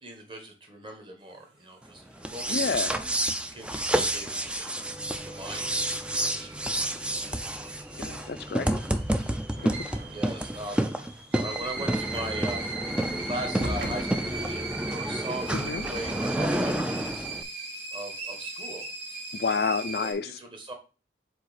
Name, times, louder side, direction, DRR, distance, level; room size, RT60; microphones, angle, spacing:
voice 1, 0.0-2.8 3.5-4.7 5.1-6.7 10.1-12.7 13.2-17.3 17.9-18.9 20.0-20.7, right 1 dB, 30° right, 3 dB, 1.2 m, -40 dB
sound 1, 2.2-17.4, right 1 dB, 5° right, 0.3 m, -30 dB
voice 2, 2.5-3.0 8.0-8.8 15.5-15.9 19.3-20.4, left 5 dB, 60° left, 12 dB, 0.4 m, -29 dB
sound 2, 3.9-20.1, right 3 dB, 70° right, 2.0 m, -39 dB
sound 3, 9.5-10.7 11.0-15.6, right 1 dB, 55° right, 1.0 m, -40 dB
4.8 x 4.0 x 5.0 m, 0.34 s
head